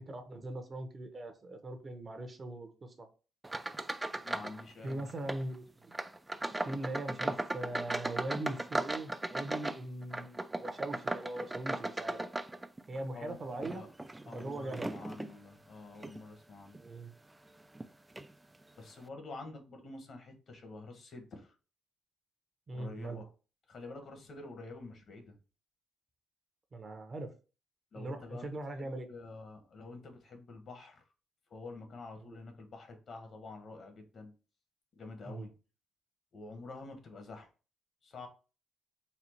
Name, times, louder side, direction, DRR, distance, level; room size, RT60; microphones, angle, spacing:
voice 1, 0.1-3.1 4.8-5.9 6.6-12.3 12.9-13.8 14.2-15.0 16.8-17.1 22.7-23.2 26.7-27.3 27.9-29.1 35.2-35.5, right 2 dB, 35° right, 0.8 m, -41 dB
sound 1, 3.4-4.6 4.9-5.4 5.9-13.0 13.5-15.3 15.9-16.2 16.7-16.9 17.7-17.9 18.2-18.3, right 2 dB, 15° right, 0.3 m, -37 dB
voice 2, 4.2-5.1 13.1-13.9 14.3-16.8 18.8-21.5 22.7-23.3 23.7-25.4 27.9-31.0 31.5-34.3 35.0-35.5 36.3-37.5 38.0-38.3, left 3 dB, 55° left, 1.2 m, -48 dB
4.2 x 2.3 x 4.4 m
cardioid pair, 90°, 0 cm